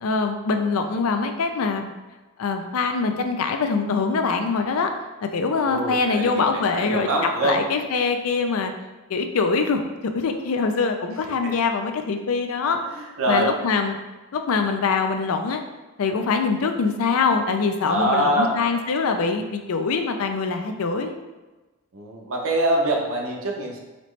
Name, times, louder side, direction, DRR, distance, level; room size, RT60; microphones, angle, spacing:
voice 1, 0.0-1.9 2.4-4.9 5.2-7.1 7.4-8.7 9.1-9.8 10.1-12.8 13.3-14.0 14.3-15.6 16.0-21.1, left 4 dB, 75° left, 6 dB, 0.4 m, -23 dB
voice 2, 5.6-7.6 11.4-11.5 12.8-13.5 17.8-18.6 21.9-23.8, right 1 dB, 70° right, 0 dB, 0.8 m, -24 dB
4.2 x 3.0 x 3.1 m, 1.2 s
head